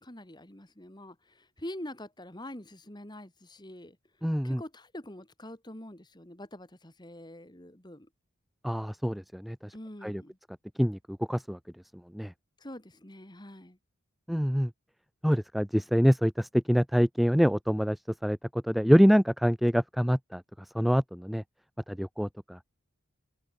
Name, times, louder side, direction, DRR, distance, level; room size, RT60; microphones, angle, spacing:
voice 1, 0.0-4.0 4.4-8.1 9.7-10.4 12.6-13.8, left 1 dB, 20° left, 2.3 m, -45 dB
voice 2, 4.2-4.6 8.6-9.7 10.0-10.2 10.8-11.6 12.1-12.3 14.3-14.7 15.2-20.4 20.7-21.4 21.9-22.6, equal, ahead, 0.3 m, -25 dB
head